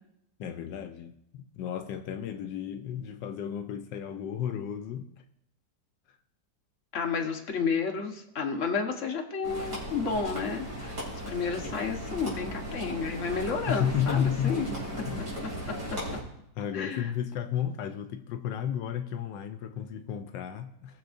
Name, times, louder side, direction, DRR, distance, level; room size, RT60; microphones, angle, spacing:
voice 1, 0.4-5.2 13.7-14.6 15.1-15.3 16.6-21.0, left 9 dB, 85° left, 1.3 m, -33 dB
voice 2, 6.9-14.8 16.7-17.1, left 5 dB, 45° left, 1.5 m, -31 dB
sound 1, 9.4-16.2, equal, 50° right, 3.7 m, -37 dB
19.5 x 6.8 x 2.6 m
omnidirectional pair, 1.9 m